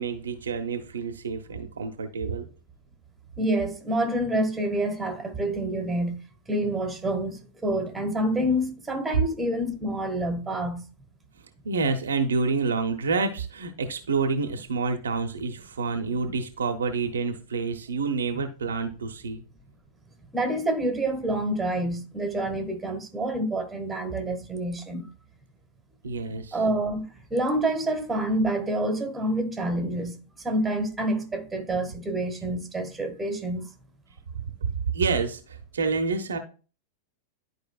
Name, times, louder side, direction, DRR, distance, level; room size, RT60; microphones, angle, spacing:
voice 1, 0.0-2.5 11.6-19.4 26.0-26.6 34.9-36.4, right 4 dB, 70° right, 0.8 m, -28 dB
voice 2, 3.4-6.2 6.5-10.8 20.3-25.1 26.5-30.2 30.4-33.7, right 1 dB, 10° right, 1.5 m, -27 dB
11.0 x 4.8 x 2.3 m
figure-of-eight pair, 90°, 0 cm